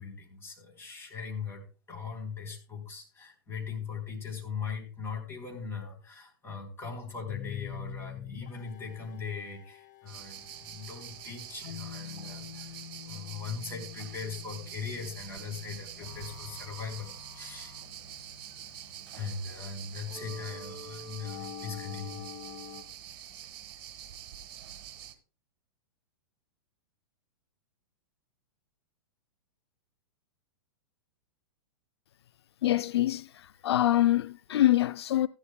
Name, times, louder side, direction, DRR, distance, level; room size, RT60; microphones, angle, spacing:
voice 1, 0.0-17.7 19.1-22.3 23.0-23.2 33.6-33.7, left 6 dB, 20° left, 3.5 m, -40 dB
sound 1, 7.2-22.8, left 7 dB, 50° left, 1.5 m, -46 dB
sound 2, 10.1-25.1, right 10 dB, 55° right, 1.6 m, -46 dB
voice 2, 32.6-35.3, left 14 dB, 80° left, 0.4 m, -25 dB
15.0 x 11.0 x 2.2 m
hypercardioid pair, 135°, 13 cm